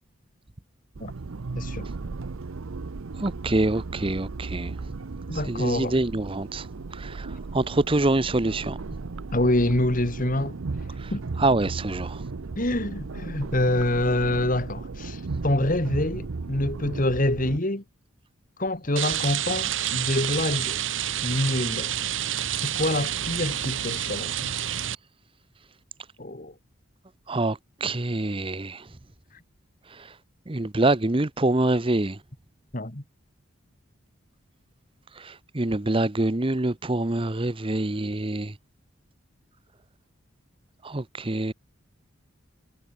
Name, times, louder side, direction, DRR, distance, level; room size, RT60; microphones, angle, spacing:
sound 1, 1.0-17.6, right 3 dB, 80° right, 0.7 m, -36 dB
voice 1, 1.6-1.9 5.3-6.0 9.3-10.6 11.1-11.2 12.6-17.8 18.6-20.8 21.2-21.9 22.5-24.6 26.2-26.5 32.7-33.0, left 1 dB, 40° left, 2.2 m, -26 dB
voice 2, 3.2-4.7 5.5-6.7 6.9-8.8 11.0-11.1 11.4-12.2 27.3-28.8 30.0-30.1 30.5-32.2 35.2-38.5 40.8-41.5, right 2 dB, 25° right, 0.8 m, -25 dB
Rain, 19.0-24.9, right 11 dB, 65° right, 1.5 m, -28 dB
head